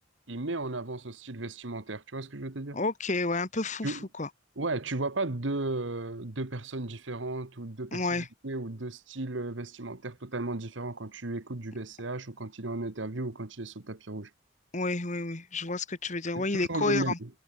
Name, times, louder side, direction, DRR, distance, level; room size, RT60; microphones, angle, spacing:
voice 1, 0.3-2.8 3.8-4.1 4.6-14.3 16.3-17.3, right 2 dB, 70° right, 1.5 m, -35 dB
voice 2, 2.7-4.3 7.9-8.3 14.7-17.2, left 3 dB, 40° left, 1.9 m, -30 dB
head